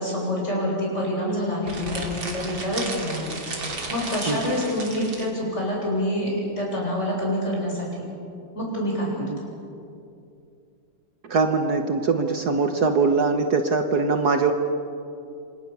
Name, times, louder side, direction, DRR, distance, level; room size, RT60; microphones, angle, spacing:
voice 1, 0.0-3.4 3.9-7.9 8.5-9.5, left 1 dB, 35° left, -3 dB, 8.0 m, -27 dB
sound 1, 1.6-5.3, right 3 dB, 80° right, 3.8 m, -34 dB
voice 2, 11.2-14.5, right 4 dB, 55° right, 6 dB, 1.6 m, -22 dB
27.5 x 26.0 x 7.0 m, 2.6 s
omnidirectional pair, 2.1 m